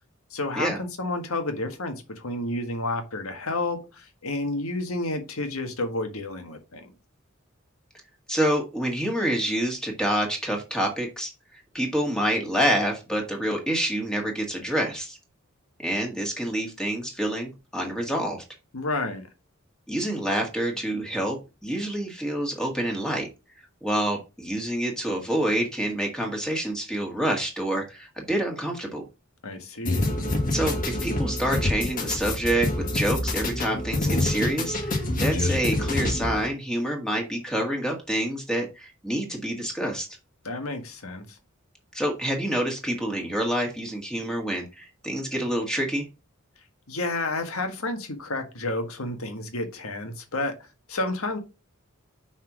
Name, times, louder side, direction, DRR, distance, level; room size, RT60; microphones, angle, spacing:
voice 1, 0.3-6.9 18.7-19.3 29.4-30.1 40.4-41.4 46.9-51.4, left 2 dB, 85° left, 1.6 m, -30 dB
voice 2, 8.3-11.3 11.7-15.2 15.8-18.4 19.9-21.4 21.6-23.3 23.8-29.0 30.5-40.1 41.9-46.1, right 1 dB, 5° left, 1.8 m, -27 dB
sound 1, 29.9-36.5, left 2 dB, 40° left, 1.6 m, -26 dB
5.8 x 4.2 x 6.0 m
head